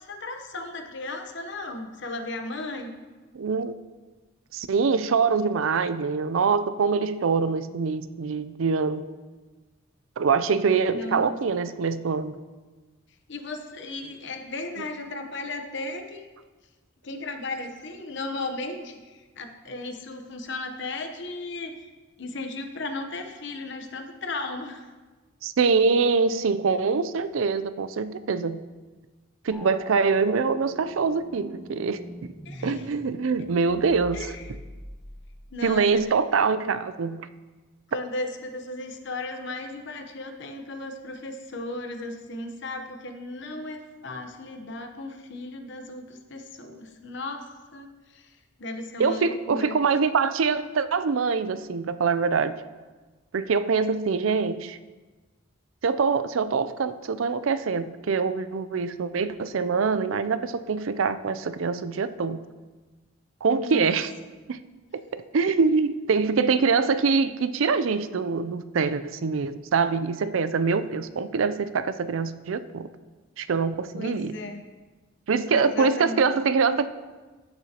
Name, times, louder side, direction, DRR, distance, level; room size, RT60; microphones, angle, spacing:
voice 1, 0.0-2.9 10.9-11.6 13.3-16.2 17.0-21.9 22.2-24.9 32.4-32.9 33.4-33.5 34.1-34.5 35.5-36.0 37.9-49.8 63.6-63.9 73.9-74.7 75.5-76.3, left 2 dB, 60° left, 6 dB, 0.9 m, -36 dB
voice 2, 3.3-3.7 4.5-9.1 10.2-12.4 25.4-28.6 29.4-32.0 32.6-34.3 35.6-37.3 49.0-52.5 53.3-54.8 55.8-62.4 63.4-64.1 64.5-64.6 64.9-72.9 73.4-74.3 75.3-76.9, right 5 dB, 75° right, 13 dB, 0.5 m, -24 dB
sound 1, 29.5-36.2, equal, 5° left, 0.7 m, -43 dB
14.5 x 6.8 x 2.9 m, 1.3 s
head